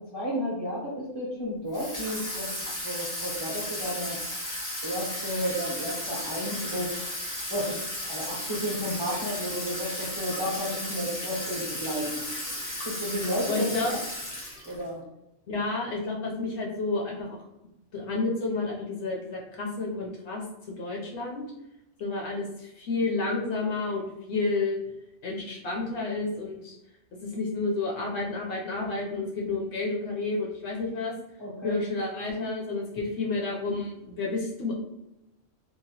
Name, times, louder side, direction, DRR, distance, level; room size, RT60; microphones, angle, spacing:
voice 1, 0.0-2.5 2.8-4.2 4.8-7.1 7.5-7.8 8.1-12.2 12.8-14.0 14.6-15.0 31.4-31.8, equal, 25° right, -7 dB, 0.6 m, -32 dB
Water tap faucet / Sink (filling or washing), 1.7-14.9, left 1 dB, 25° left, 0.4 m, -35 dB
voice 2, 13.5-13.9 15.5-17.3 17.9-20.4 20.8-21.4 22.0-24.8 25.2-26.7 27.2-31.1 31.6-34.7, left 3 dB, 65° left, -1 dB, 0.8 m, -30 dB
2.9 x 2.1 x 2.7 m, 0.90 s
omnidirectional pair, 1.4 m